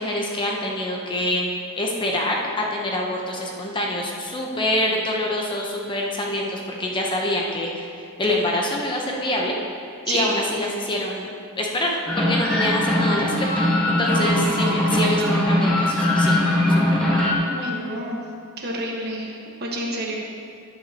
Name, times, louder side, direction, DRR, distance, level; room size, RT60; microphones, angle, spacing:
voice 1, 0.0-9.6 10.1-13.3 14.0-16.4 16.7-17.2, left 1 dB, 20° left, -1 dB, 0.9 m, -26 dB
sound 1, 12.1-17.3, left 1 dB, 5° left, 1.5 m, -20 dB
voice 2, 14.9-15.3 17.4-18.2 18.6-20.1, right 2 dB, 50° right, -2 dB, 1.4 m, -29 dB
10.5 x 9.4 x 3.0 m, 2.4 s
head